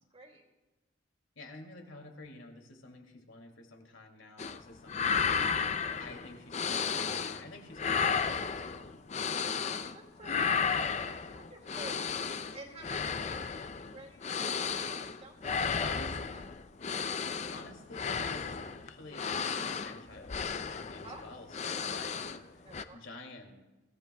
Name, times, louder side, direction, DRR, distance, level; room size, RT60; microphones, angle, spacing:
voice 1, 0.1-0.4 9.5-15.8 16.3-16.5 21.0-21.2 22.6-23.0, right 2 dB, 35° right, 1 dB, 2.4 m, -52 dB
voice 2, 1.4-9.7 15.8-16.2 17.5-22.2 22.6-23.5, left 2 dB, 85° left, 2 dB, 2.5 m, -50 dB
sound 1, 4.4-4.6 4.9-7.5 7.7-10.0 10.2-22.5 22.7-22.8, left 6 dB, 35° left, 0.5 m, -33 dB
24.5 x 15.0 x 2.3 m, 1.1 s
head